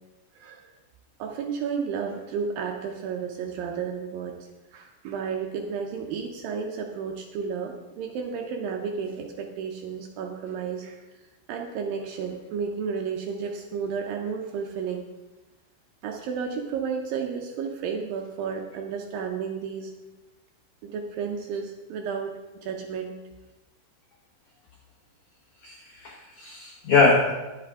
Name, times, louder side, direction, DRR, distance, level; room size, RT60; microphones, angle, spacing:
voice 1, 0.3-0.7 1.2-15.1 16.0-19.9 20.8-23.2, right 6 dB, 80° right, 2 dB, 2.1 m, -32 dB
voice 2, 25.6-27.3, left 3 dB, 80° left, -1 dB, 1.6 m, -22 dB
11.0 x 8.2 x 3.6 m, 1.1 s
omnidirectional pair, 4.6 m